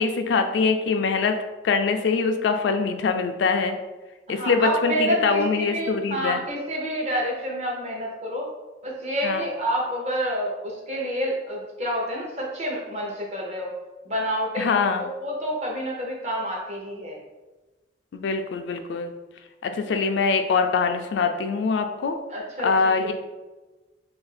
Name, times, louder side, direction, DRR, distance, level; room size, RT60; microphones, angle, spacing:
voice 1, 0.0-1.4 1.6-3.8 4.3-6.4 9.2-9.4 14.6-15.0 18.1-19.1 19.6-22.2 22.6-23.1, left 4 dB, 70° left, 6 dB, 0.3 m, -23 dB
voice 2, 4.3-8.5 8.8-13.8 14.1-14.9 15.2-17.2 22.3-23.1, equal, 35° right, -2 dB, 0.7 m, -28 dB
2.7 x 2.5 x 4.0 m, 1.2 s
head